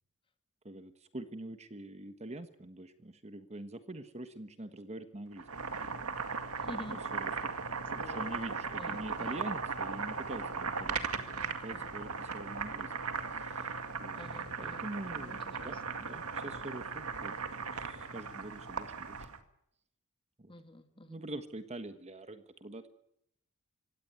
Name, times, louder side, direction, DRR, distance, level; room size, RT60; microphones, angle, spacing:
voice 1, 0.6-5.5 6.9-7.5 7.9-12.9 13.3-14.3 14.6-19.3 20.4-20.5 21.0-22.9, right 1 dB, 30° right, 10 dB, 1.3 m, -45 dB
Boiling, 5.3-19.4, right 5 dB, 75° right, 2.1 m, -38 dB
voice 2, 6.6-7.0 7.8-8.4 8.8-9.0 11.3-11.6 14.1-14.8 15.2-15.8 20.5-21.2, left 1 dB, 25° left, 8 dB, 2.1 m, -48 dB
24.5 x 17.0 x 9.4 m, 0.78 s
head